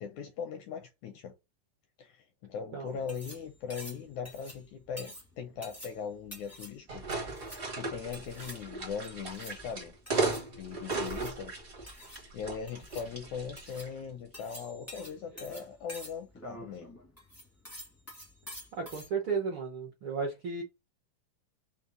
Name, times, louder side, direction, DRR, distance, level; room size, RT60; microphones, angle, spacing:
voice 1, 0.0-1.3 2.0-7.1 7.7-9.9 10.6-11.6 12.3-17.0, left 6 dB, 80° left, 1.8 m, -40 dB
sound 1, 2.9-19.1, equal, 20° left, 0.4 m, -49 dB
sound 2, 6.9-13.9, right 3 dB, 50° right, 0.7 m, -36 dB
voice 2, 18.8-20.6, right 5 dB, 70° right, 1.2 m, -34 dB
5.3 x 2.1 x 3.7 m
omnidirectional pair, 3.9 m